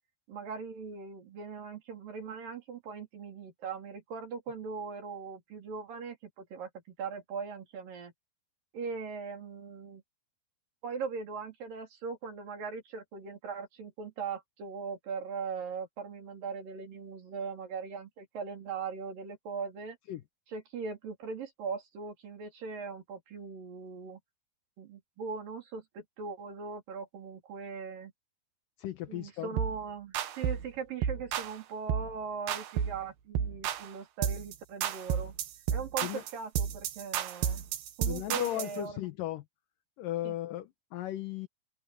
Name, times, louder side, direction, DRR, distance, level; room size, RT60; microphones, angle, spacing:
voice 1, 0.3-8.1 8.7-10.0 10.8-20.0 20.5-24.2 24.8-28.1 29.1-35.3 35.7-37.7 38.0-39.0 40.2-40.4, right 5 dB, 65° right, 5.4 m, -40 dB
voice 2, 28.8-29.6 36.0-36.2 38.0-39.4 40.0-41.5, left 13 dB, 70° left, 2.6 m, -36 dB
sound 1, 29.6-29.8 30.1-30.7 31.0-31.5 31.9-32.1 32.5-33.0 33.4-33.9 34.2-34.5 34.8-38.8, right 9 dB, 85° right, 3.3 m, -32 dB
omnidirectional pair, 4.2 m